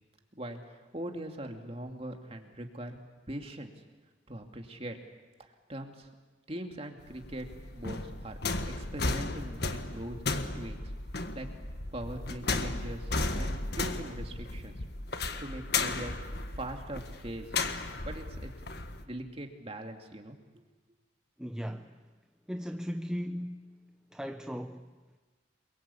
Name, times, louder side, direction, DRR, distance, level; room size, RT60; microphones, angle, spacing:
voice 1, 0.9-3.0 3.3-3.7 4.3-5.0 5.4-6.1 6.5-7.5 7.7-8.4 8.7-10.2 10.5-10.9 11.3-11.5 11.9-14.8 15.4-17.5 18.0-18.5 19.0-20.4, right 1 dB, 30° right, 2.6 m, -41 dB
sound 1, 7.0-19.0, left 3 dB, 55° left, 1.6 m, -35 dB
voice 2, 21.4-22.0 22.5-23.7 24.1-24.9, equal, 5° right, 0.7 m, -37 dB
29.0 x 23.0 x 8.6 m
head